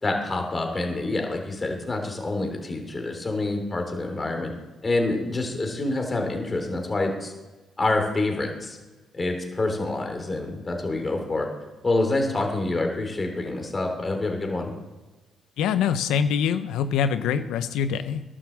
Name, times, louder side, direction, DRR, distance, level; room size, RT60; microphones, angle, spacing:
voice 1, 0.0-4.5 4.8-7.3 7.8-8.8 9.1-11.5 11.8-14.7, left 2 dB, 25° left, 3 dB, 3.2 m, -27 dB
voice 2, 15.6-18.2, left 7 dB, 90° left, 11 dB, 0.6 m, -24 dB
11.5 x 7.4 x 7.3 m, 1.2 s
cardioid pair, 90°, 0 cm